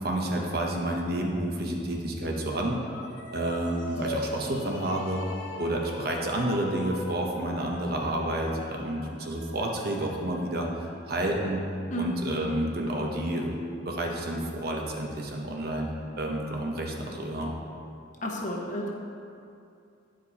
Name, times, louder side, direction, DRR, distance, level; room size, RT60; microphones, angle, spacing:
voice 1, 0.0-2.8 3.3-5.2 5.6-10.7 11.1-11.6 11.9-17.5, right 1 dB, 55° right, 0 dB, 0.9 m, -30 dB
sound 1, 2.8-11.3, left 1 dB, 75° left, 0.8 m, -40 dB
voice 2, 18.2-18.9, equal, 40° left, -1 dB, 1.0 m, -31 dB
9.9 x 5.1 x 4.1 m, 2.5 s
head